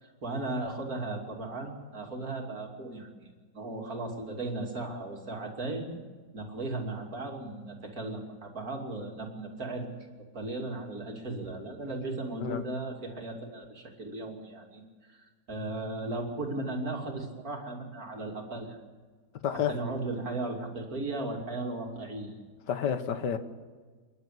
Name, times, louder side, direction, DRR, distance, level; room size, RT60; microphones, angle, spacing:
voice 1, 0.0-5.9 6.3-9.9 10.3-18.8 19.5-22.4, right 2 dB, 60° right, 3.3 m, -36 dB
voice 2, 19.4-19.7 22.7-23.4, left 8 dB, 85° left, 1.9 m, -29 dB
28.5 x 11.0 x 8.4 m
omnidirectional pair, 1.8 m